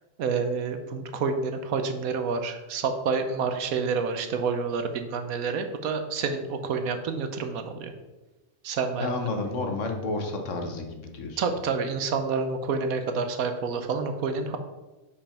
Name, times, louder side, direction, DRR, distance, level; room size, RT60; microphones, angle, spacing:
voice 1, 0.2-7.9 8.6-9.3 11.4-14.6, right 5 dB, 75° right, 7 dB, 1.2 m, -28 dB
voice 2, 9.0-11.4, left 3 dB, 60° left, 4 dB, 1.2 m, -31 dB
5.2 x 5.1 x 5.7 m, 1.1 s
omnidirectional pair, 1.5 m